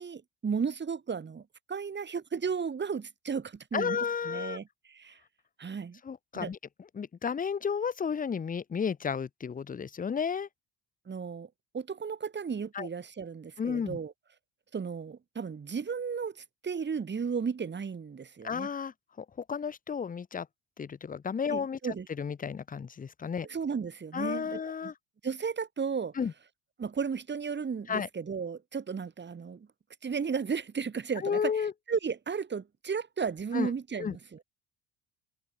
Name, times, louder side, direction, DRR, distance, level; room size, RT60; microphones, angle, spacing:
voice 1, 0.0-4.0 4.3-5.2 5.6-6.0 6.3-6.5 11.1-11.5 11.7-14.1 14.7-18.7 21.5-22.1 23.5-24.9 25.2-26.1 26.8-29.7 30.0-34.2, right 6 dB, 25° right, 1.8 m, -34 dB
voice 2, 3.7-4.6 6.0-6.6 6.9-10.5 12.7-12.9 13.6-14.0 18.4-20.5 20.8-23.5 24.1-24.9 26.2-26.3 27.9-28.1 31.2-31.7 33.5-33.7 34.0-34.2, left 6 dB, 20° left, 0.6 m, -32 dB
cardioid pair, 125°, 44 cm